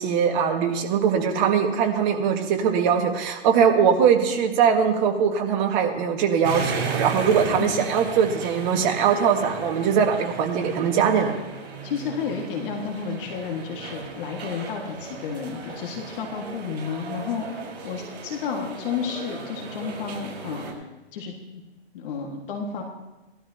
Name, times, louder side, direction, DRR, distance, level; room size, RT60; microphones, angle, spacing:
voice 1, 0.0-11.3, right 7 dB, 40° right, 3 dB, 1.9 m, -21 dB
sound 1, 6.4-20.7, right 4 dB, 65° right, 5.0 m, -35 dB
voice 2, 11.8-20.8 21.1-21.6 21.9-22.8, left 6 dB, 50° left, 1 dB, 1.9 m, -31 dB
20.0 x 12.5 x 2.9 m, 1.1 s
hypercardioid pair, 135°, 34 cm